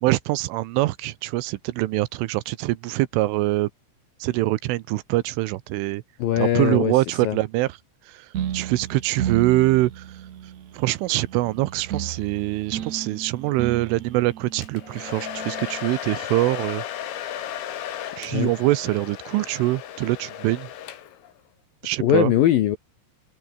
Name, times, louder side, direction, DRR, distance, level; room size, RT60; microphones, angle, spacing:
voice 1, 0.0-3.7 4.2-6.0 6.4-7.7 8.1-10.2 10.7-16.8 18.2-20.7 21.8-22.3, right 18 dB, 85° right, 3.4 m, -24 dB
voice 2, 6.2-6.9 7.2-7.4 18.3-18.5 22.0-22.8, left 12 dB, 75° left, 2.2 m, -20 dB
sound 1, 8.3-15.8, right 10 dB, 65° right, 1.7 m, -34 dB
Domestic sounds home sounds, 14.6-21.3, left 11 dB, 90° left, 5.2 m, -35 dB
omnidirectional pair, 5.7 m